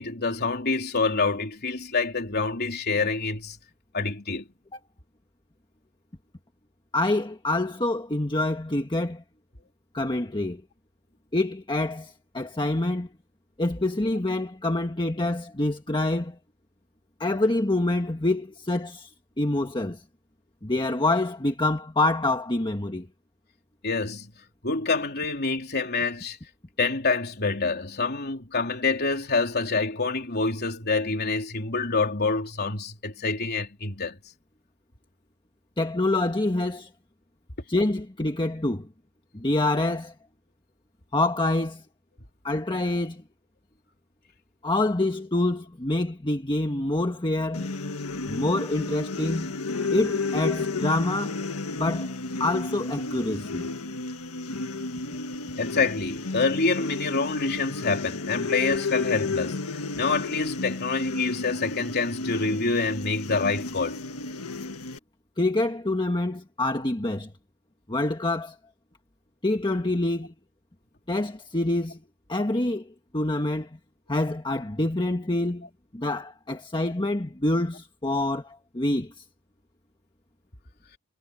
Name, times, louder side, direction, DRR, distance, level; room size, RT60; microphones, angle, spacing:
voice 1, 0.0-3.6 3.9-4.5 23.8-24.3 24.6-26.4 26.8-34.2 55.6-64.0, left 4 dB, 45° left, 3.6 m, -27 dB
voice 2, 6.9-9.2 9.9-10.6 11.3-13.1 13.6-16.4 17.2-19.1 19.4-20.0 20.6-23.1 35.8-36.9 37.7-38.9 39.3-40.1 41.1-41.8 42.4-43.2 44.6-47.7 48.3-49.5 49.9-51.4 51.7-52.1 52.4-53.7 65.4-67.3 67.9-68.6 69.4-70.3 71.1-72.0 72.3-73.7 74.1-75.7 75.9-79.1, left 2 dB, 20° left, 1.5 m, -26 dB
sound 1, 47.5-65.0, left 3 dB, 80° left, 1.5 m, -32 dB
head